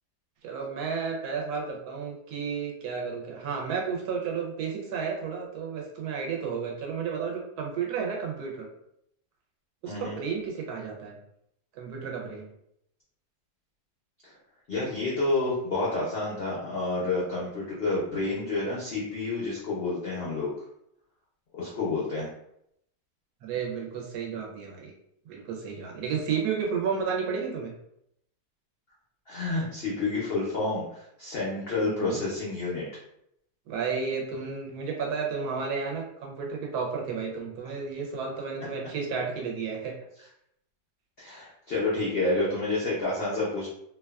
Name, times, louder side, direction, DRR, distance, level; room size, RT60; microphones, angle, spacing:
voice 1, 0.4-8.7 9.8-11.2 11.7-12.5 23.4-24.9 25.3-27.7 31.8-32.2 33.7-39.9, right 6 dB, 70° right, 0 dB, 1.1 m, -32 dB
voice 2, 9.9-10.2 14.2-14.4 14.7-20.5 21.5-22.3 29.3-32.8 41.2-43.7, left 2 dB, 70° left, -6 dB, 0.5 m, -29 dB
2.8 x 2.2 x 2.3 m, 0.76 s
omnidirectional pair, 1.8 m